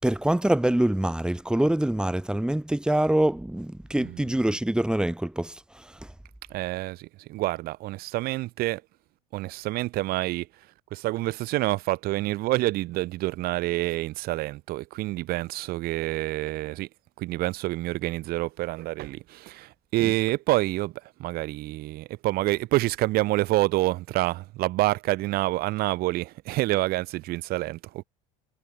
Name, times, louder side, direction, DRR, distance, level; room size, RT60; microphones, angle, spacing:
voice 1, 0.0-6.1 20.0-20.1, right 1 dB, 5° right, 4.9 m, -25 dB
voice 2, 6.5-8.8 9.3-16.9 17.2-28.0, right 18 dB, 65° right, 6.8 m, -27 dB
hypercardioid pair, 80°, 17 cm